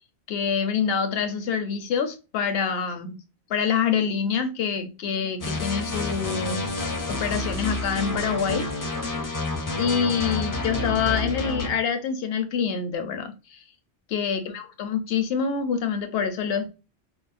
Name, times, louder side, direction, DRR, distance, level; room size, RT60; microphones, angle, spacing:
voice 1, 0.3-3.2 3.5-6.7 7.1-8.6 8.9-9.3 9.8-13.6 14.1-16.7, left 6 dB, 65° left, 7 dB, 0.8 m, -26 dB
sound 1, 5.4-11.7, left 2 dB, 25° left, 0.5 m, -29 dB
4.7 x 2.0 x 2.4 m, 0.30 s
omnidirectional pair, 1.1 m